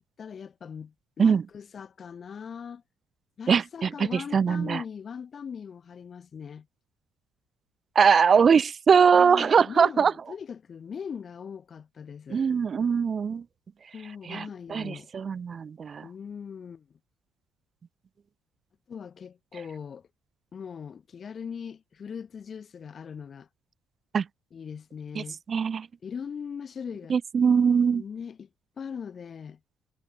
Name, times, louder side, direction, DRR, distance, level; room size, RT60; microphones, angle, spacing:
voice 1, 0.0-2.8 3.4-6.7 9.1-12.5 13.9-15.1 16.0-16.9 18.9-20.1 20.5-23.5 24.5-25.4 26.0-27.2 27.9-28.5 28.8-29.6, left 7 dB, 45° left, 1.5 m, -40 dB
voice 2, 3.5-4.8 7.9-10.1 12.3-13.4 14.3-14.4 14.7-16.0 24.1-24.2 25.2-25.9 27.1-28.0, right 6 dB, 45° right, 0.8 m, -22 dB
hypercardioid pair, 60°, 0 cm